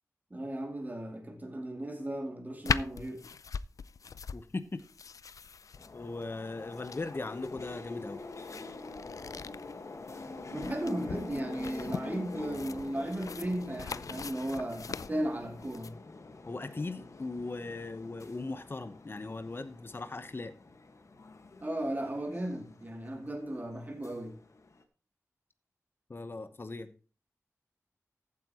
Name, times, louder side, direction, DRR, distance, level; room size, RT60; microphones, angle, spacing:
voice 1, 0.3-3.2 10.5-16.0 21.6-24.4, right 1 dB, 30° right, 2.6 m, -36 dB
sound 1, 2.6-15.9, left 5 dB, 85° left, 0.4 m, -40 dB
voice 2, 4.3-4.8 5.9-8.2 16.5-20.5 26.1-26.9, left 3 dB, 40° left, 1.0 m, -39 dB
sound 2, 5.7-24.8, left 3 dB, 65° left, 1.5 m, -46 dB
14.5 x 8.6 x 3.0 m
wide cardioid pair, 90°, 6 cm